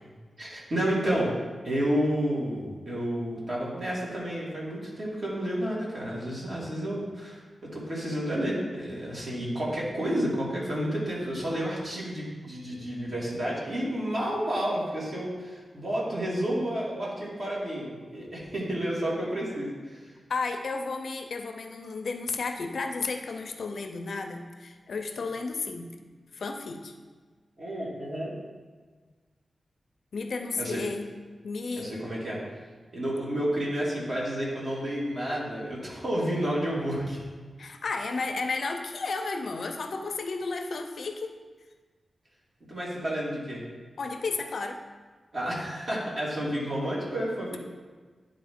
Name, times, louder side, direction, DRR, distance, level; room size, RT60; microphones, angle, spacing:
voice 1, 0.4-1.3 1.6-7.4 7.7-20.1 27.6-28.3 30.6-30.8 31.7-32.4 32.9-37.2 42.7-43.6 45.3-47.6, equal, 45° right, -6 dB, 2.1 m, -30 dB
voice 2, 20.3-25.9 26.3-26.9 30.1-31.1 31.4-32.0 37.6-41.3 44.0-44.8, left 3 dB, 65° left, 5 dB, 0.5 m, -33 dB
10.5 x 4.0 x 3.6 m, 1.4 s
wide cardioid pair, 150°, 0 cm